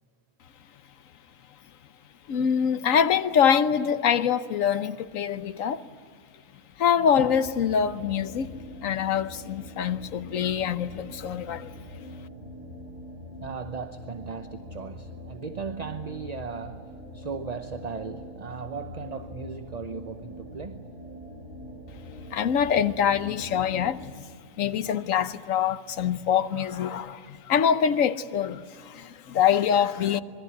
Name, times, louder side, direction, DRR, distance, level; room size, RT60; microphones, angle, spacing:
voice 1, 2.3-5.8 6.8-8.5 8.8-11.7 22.3-24.2 24.6-30.2, left 8 dB, 80° left, 1.3 m, -24 dB
sound 1, 7.1-24.1, left 1 dB, 65° right, 3.1 m, -43 dB
voice 2, 13.4-20.9, right 5 dB, 35° right, 0.8 m, -37 dB
26.0 x 22.5 x 9.4 m
omnidirectional pair, 1.4 m